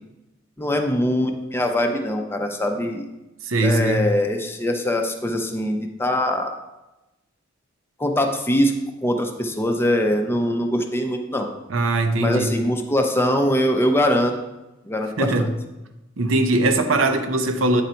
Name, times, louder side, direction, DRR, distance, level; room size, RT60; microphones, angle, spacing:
voice 1, 0.6-3.0 3.6-6.5 8.0-8.7 9.0-11.5 12.2-14.3 14.9-15.5, left 1 dB, 10° left, 4 dB, 0.5 m, -22 dB
voice 2, 3.4-4.1 11.7-12.6 15.2-15.5 16.2-17.8, right 2 dB, 75° right, 7 dB, 0.7 m, -20 dB
8.6 x 3.9 x 4.4 m, 1.0 s
head